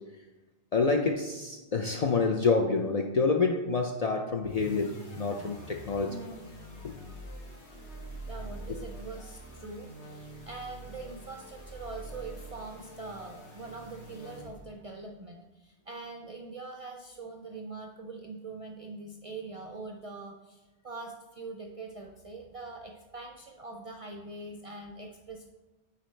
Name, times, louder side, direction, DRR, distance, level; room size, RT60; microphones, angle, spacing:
voice 1, 0.7-6.2 6.8-6.9 8.8-8.9, left 4 dB, 55° left, 1 dB, 0.4 m, -27 dB
sound 1, 4.4-14.8, right 1 dB, 85° left, 1.7 m, -45 dB
voice 2, 8.3-25.5, right 3 dB, 50° right, 1 dB, 0.4 m, -43 dB
9.6 x 4.1 x 3.2 m, 1.1 s
omnidirectional pair, 1.1 m